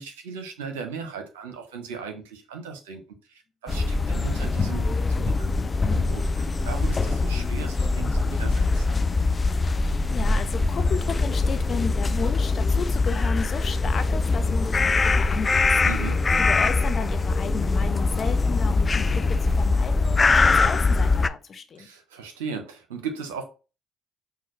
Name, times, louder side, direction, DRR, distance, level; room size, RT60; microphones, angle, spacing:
voice 1, 0.0-3.0 3.3-5.5 5.9-8.9 15.8-16.2 21.8-23.4, right 5 dB, 90° right, 0.8 m, -37 dB
sound 1, 3.7-21.3, left 3 dB, 35° left, 0.3 m, -22 dB
voice 2, 9.7-15.7 16.4-21.9, left 5 dB, 50° left, 0.8 m, -34 dB
5.9 x 2.3 x 3.1 m
hypercardioid pair, 55°, 0 cm